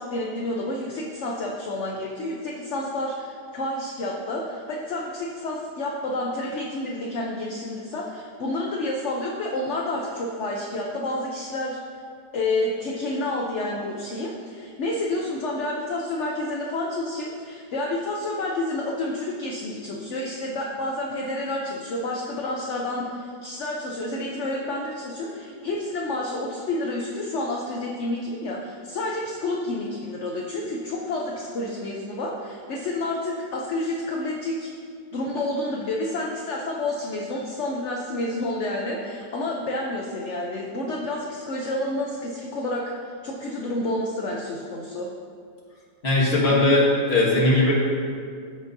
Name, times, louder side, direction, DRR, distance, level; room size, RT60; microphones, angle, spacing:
voice 1, 0.0-11.8 12.3-34.7 35.1-42.9 43.2-45.1, left 2 dB, 60° left, -1 dB, 0.8 m, -29 dB
voice 2, 46.0-47.7, left 2 dB, 40° left, -5 dB, 1.7 m, -19 dB
14.0 x 5.3 x 2.6 m, 2.2 s
omnidirectional pair, 1.8 m